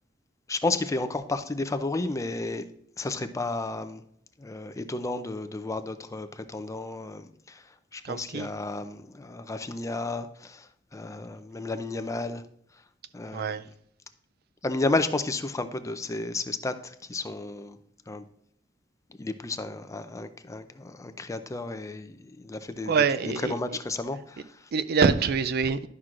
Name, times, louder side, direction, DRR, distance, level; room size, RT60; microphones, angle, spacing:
voice 1, 0.5-2.6 3.0-4.0 4.4-12.4 13.1-13.6 14.6-17.8 18.1-18.2 19.2-22.9 23.4-24.7, left 2 dB, 15° left, 0.4 m, -32 dB
voice 2, 8.0-8.5 13.3-13.6 22.9-23.5 24.7-25.9, right 5 dB, 55° right, 0.4 m, -25 dB
11.0 x 6.0 x 2.5 m
head